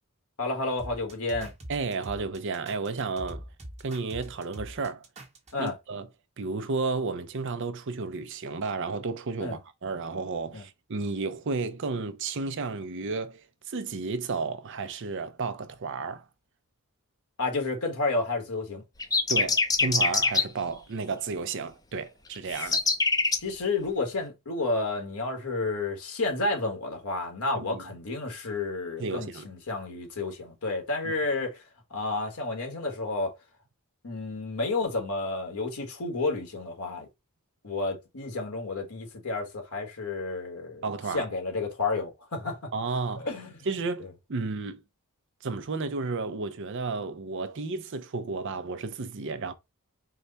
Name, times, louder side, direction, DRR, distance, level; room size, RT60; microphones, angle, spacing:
voice 1, 0.4-1.5 5.5-5.7 9.4-9.6 10.5-10.6 17.4-18.8 22.6-22.7 23.4-31.6 31.9-33.3 34.0-37.1 37.6-40.8 41.1-42.7 43.2-43.6 44.0-44.1, left 3 dB, 85° left, 1.5 m, -31 dB
sound 1, 0.8-5.7, right 1 dB, 30° right, 1.1 m, -43 dB
voice 2, 1.7-3.4 3.8-5.0 5.6-6.1 6.4-16.2 19.3-22.8 27.6-27.8 29.0-29.5 31.0-31.1 40.8-41.3 42.7-43.3 43.7-44.8 45.4-49.5, right 4 dB, 55° right, 0.6 m, -32 dB
sound 2, 19.0-20.4 22.5-23.4, left 4 dB, 15° left, 0.5 m, -23 dB
4.7 x 2.2 x 3.9 m
head